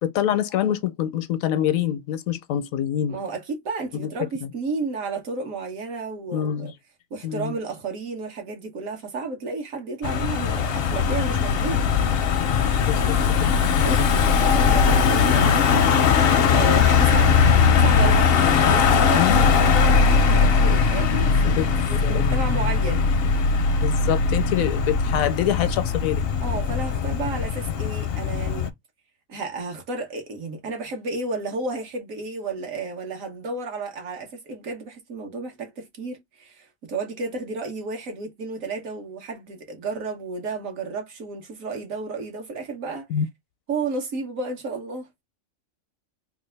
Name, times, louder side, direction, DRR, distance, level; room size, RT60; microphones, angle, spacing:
voice 1, 0.0-3.2 3.9-4.5 6.3-6.7 7.2-7.6 12.9-13.3 13.8-14.0 18.4-18.7 19.1-19.5 21.5-22.4 23.8-26.2 43.1-43.3, left 10 dB, 80° left, 1.0 m, -26 dB
voice 2, 3.1-6.7 7.1-11.8 13.8-18.3 18.6-21.6 21.9-23.1 26.4-28.7 29.3-43.1 43.7-45.1, right 3 dB, 70° right, 1.4 m, -32 dB
Car passing by / Engine, 10.0-28.7, left 5 dB, 60° left, 0.6 m, -20 dB
3.3 x 2.4 x 3.2 m
omnidirectional pair, 1.5 m